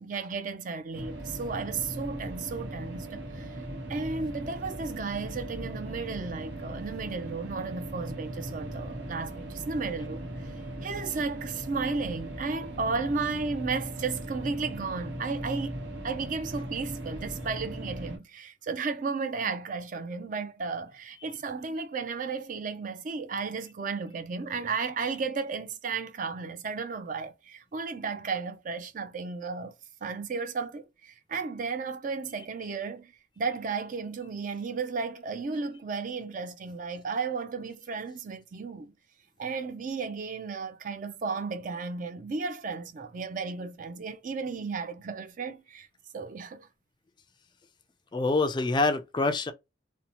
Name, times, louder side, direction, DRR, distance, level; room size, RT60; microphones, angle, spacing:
voice 1, 0.0-3.6 3.9-10.3 10.8-15.8 16.0-29.7 30.0-38.9 39.4-45.9 46.1-46.7, right 4 dB, 45° right, 0.4 m, -34 dB
sound 1, 0.9-18.2, right 1 dB, 80° right, 1.0 m, -39 dB
voice 2, 48.1-49.5, left 3 dB, 25° left, 0.3 m, -25 dB
2.8 x 2.1 x 2.7 m
head